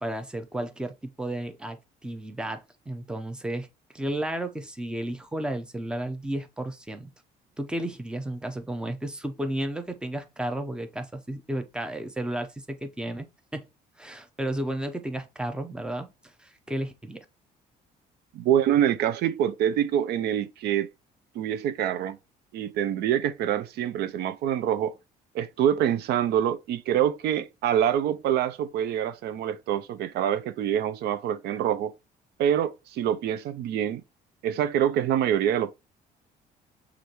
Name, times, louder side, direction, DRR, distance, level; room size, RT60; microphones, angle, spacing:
voice 1, 0.0-3.7 3.9-7.1 7.6-13.3 13.5-13.7 14.0-17.2, right 1 dB, 5° right, 0.7 m, -33 dB
voice 2, 18.3-20.9 21.3-22.2 22.5-25.0 25.3-31.9 32.4-34.0 34.4-35.7, right 10 dB, 75° right, 0.5 m, -25 dB
6.1 x 2.6 x 3.0 m
cardioid pair, 110°, 17 cm